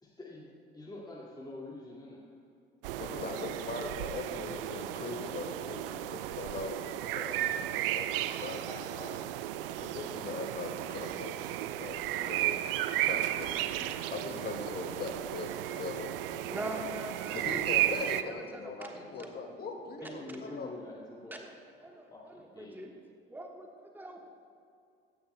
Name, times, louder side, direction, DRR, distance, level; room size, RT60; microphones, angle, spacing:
voice 1, 0.0-2.3 3.1-3.4 8.6-9.3 9.7-9.9 16.4-16.5 17.3-17.4 20.0-21.3 22.1-22.8, left 2 dB, 15° left, -4 dB, 2.1 m, -46 dB
sound 1, 2.8-18.2, right 13 dB, 70° right, 0.5 m, -34 dB
voice 2, 3.0-6.8 7.0-8.7 9.8-16.4 17.3-20.7, left 3 dB, 35° left, 3 dB, 2.0 m, -41 dB
voice 3, 16.4-19.5 20.0-20.6 21.3-21.5 21.8-23.0 23.3-24.3, right 1 dB, 5° right, 2 dB, 1.3 m, -44 dB
16.5 x 14.0 x 2.2 m, 2.5 s
figure-of-eight pair, 60°, 29 cm